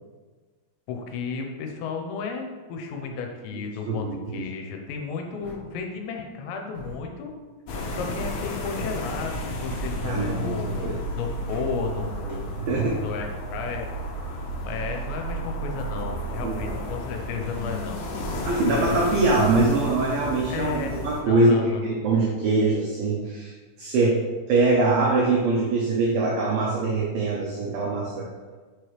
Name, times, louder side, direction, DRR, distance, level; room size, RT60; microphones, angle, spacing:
voice 1, 0.9-7.3 7.9-13.9 14.6-18.0 20.5-21.8, left 5 dB, 90° left, 3 dB, 2.9 m, -33 dB
voice 2, 3.9-4.4 10.0-11.0 12.3-13.0 16.4-16.7 18.5-23.5 23.8-24.2 24.5-28.3, right 3 dB, 90° right, -3 dB, 2.0 m, -23 dB
sound 1, 5.4-5.5 6.7-6.9 8.1-9.9 10.6-12.4, right 1 dB, 55° right, 1.5 m, -42 dB
sound 2, 7.7-21.2, equal, 75° left, 2.6 m, -32 dB
6.7 x 4.8 x 3.1 m, 1.4 s
omnidirectional pair, 5.2 m